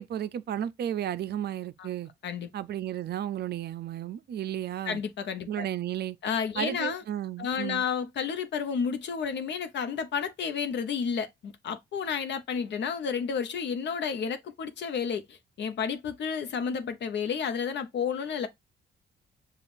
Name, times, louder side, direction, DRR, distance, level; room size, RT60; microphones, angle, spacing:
voice 1, 0.0-2.1 2.5-5.0 5.5-6.2 6.6-7.8, right 11 dB, 55° right, 0.5 m, -33 dB
voice 2, 4.9-5.7 6.2-7.0 7.4-18.5, left 6 dB, 60° left, 0.8 m, -31 dB
7.0 x 2.4 x 2.5 m
cardioid pair, 90°, 20 cm